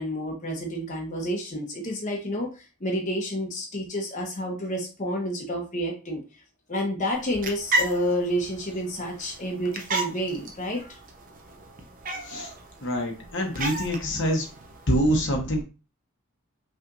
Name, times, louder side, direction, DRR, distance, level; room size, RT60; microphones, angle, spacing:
voice 1, 0.0-2.5 2.8-6.2 6.7-11.0, equal, 35° left, 0 dB, 1.0 m, -29 dB
sound 1, 7.1-14.9, right 2 dB, 35° right, 0.7 m, -34 dB
voice 2, 12.8-14.5 14.9-15.6, equal, 55° left, 1 dB, 1.1 m, -25 dB
5.6 x 3.3 x 2.6 m, 0.31 s
head